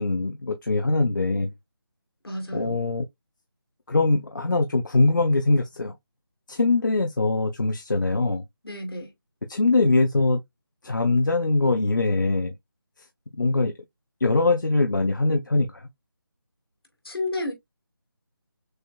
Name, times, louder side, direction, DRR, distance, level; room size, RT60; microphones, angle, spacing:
voice 1, 0.0-1.5 2.5-3.0 3.9-5.9 6.5-8.4 9.5-10.4 10.8-12.5 13.4-13.7 14.2-15.9, left 3 dB, 55° left, 0.6 m, -22 dB
voice 2, 2.2-2.9 8.6-9.1 17.0-17.5, left 2 dB, 75° left, 2.4 m, -31 dB
6.4 x 2.3 x 2.5 m
figure-of-eight pair, 180°, 13 cm